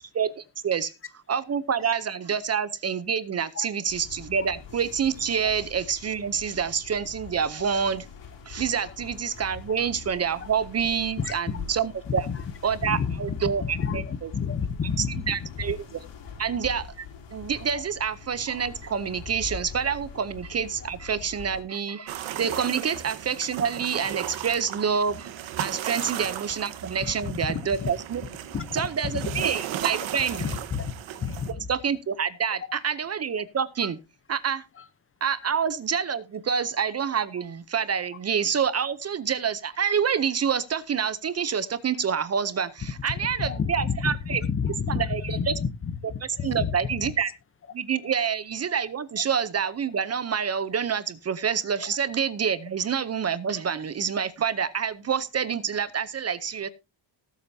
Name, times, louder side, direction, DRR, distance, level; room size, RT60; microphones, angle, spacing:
voice 1, 0.1-0.9 1.3-8.0 8.5-12.3 12.6-14.3 15.0-16.0 16.4-25.3 25.6-28.2 28.7-30.4 31.7-34.0 34.3-34.6 35.2-44.4 44.9-45.5 46.4-47.3 47.7-56.7, right 7 dB, 35° right, 0.7 m, -27 dB
sound 1, 3.9-21.6, left 5 dB, 70° left, 4.9 m, -43 dB
voice 2, 12.1-12.4 12.8-15.6 17.7-17.8 25.9-26.1 27.2-27.9 28.5-29.5 30.3-30.8 31.2-31.7 32.7-32.8 34.8-34.9 35.4-35.5 43.4-47.1 48.0-48.1 51.8-52.0, left 6 dB, 30° left, 0.8 m, -31 dB
sound 2, 22.1-31.5, right 11 dB, 80° right, 1.4 m, -35 dB
19.0 x 7.9 x 2.7 m
cardioid pair, 145°, 46 cm